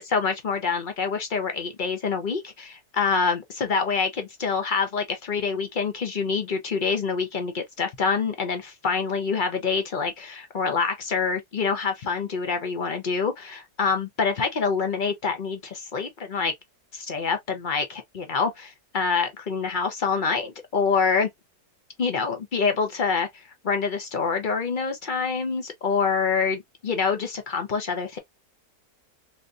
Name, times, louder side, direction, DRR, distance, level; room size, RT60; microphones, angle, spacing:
voice 1, 0.0-16.5 16.9-21.3 22.0-28.2, left 5 dB, 50° left, 0.6 m, -26 dB
3.3 x 2.6 x 2.4 m
omnidirectional pair, 1.7 m